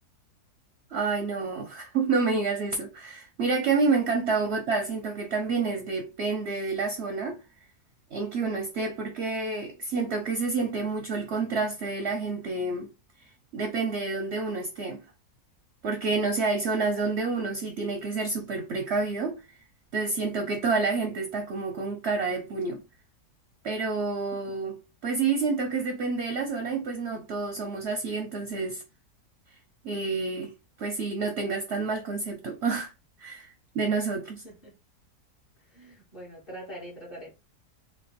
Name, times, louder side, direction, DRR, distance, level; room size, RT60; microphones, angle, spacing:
voice 1, 0.9-7.4 8.1-12.9 13.5-15.0 15.8-19.4 19.9-22.8 23.6-24.8 25.0-28.8 29.8-30.5 30.8-32.9 33.2-34.4, right 4 dB, 60° right, 0.7 m, -29 dB
voice 2, 35.7-37.3, equal, 40° left, 1.2 m, -43 dB
3.2 x 2.2 x 4.1 m
omnidirectional pair, 1.7 m